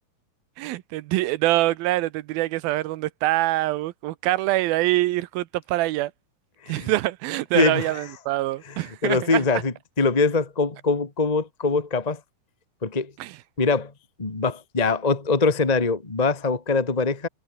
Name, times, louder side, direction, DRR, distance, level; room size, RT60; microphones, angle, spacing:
voice 1, 0.6-6.1 6.7-9.4 13.2-13.3, right 17 dB, 80° right, 2.5 m, -24 dB
voice 2, 7.5-7.9 8.6-12.2 12.8-13.1 13.6-13.9 14.2-17.3, left 4 dB, 30° left, 0.7 m, -23 dB
omnidirectional pair, 4.5 m